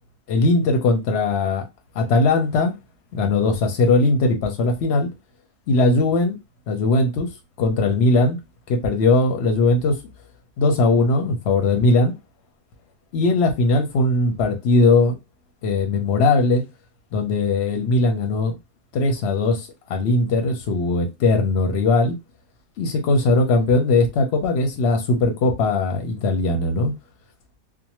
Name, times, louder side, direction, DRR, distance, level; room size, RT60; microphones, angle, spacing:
voice 1, 0.3-1.6 1.9-2.7 3.1-5.1 5.7-6.4 6.7-7.3 7.6-8.4 8.7-10.0 10.6-12.1 13.1-15.2 15.6-16.6 17.1-18.6 18.9-22.1 22.8-26.9, left 3 dB, 55° left, 0.8 m, -19 dB
2.6 x 2.2 x 2.9 m
omnidirectional pair, 1.6 m